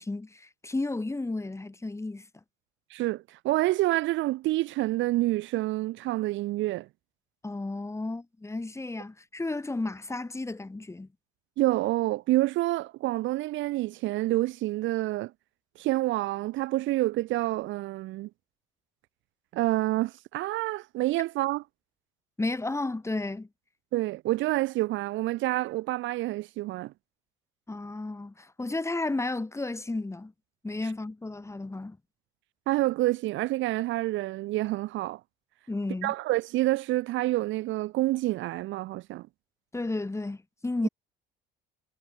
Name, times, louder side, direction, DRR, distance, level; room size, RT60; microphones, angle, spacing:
voice 1, 0.0-2.3 7.4-11.1 22.4-23.5 27.7-30.3 30.6-32.0 35.7-36.1 39.7-40.9, left 2 dB, 15° left, 3.4 m, -33 dB
voice 2, 2.9-6.9 11.6-15.3 15.8-18.3 19.5-21.6 23.9-26.9 32.7-35.2 36.0-39.3, right 17 dB, 65° right, 0.9 m, -28 dB
supercardioid pair, 90°, 21 cm